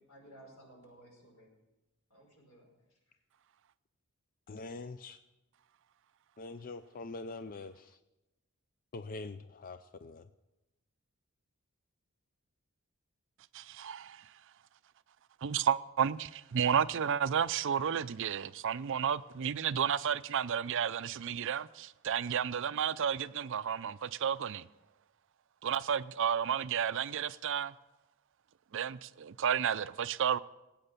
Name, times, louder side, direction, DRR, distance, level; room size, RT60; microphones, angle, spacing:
voice 1, 0.0-1.5 2.1-2.7, right 1 dB, 90° left, 5.4 m, -56 dB
voice 2, 4.5-5.2 6.4-8.0 8.9-10.3, left 3 dB, 40° left, 0.5 m, -44 dB
voice 3, 13.5-14.3 15.4-24.7 25.6-27.7 28.7-30.4, right 8 dB, 60° right, 0.5 m, -32 dB
19.0 x 8.8 x 6.8 m
head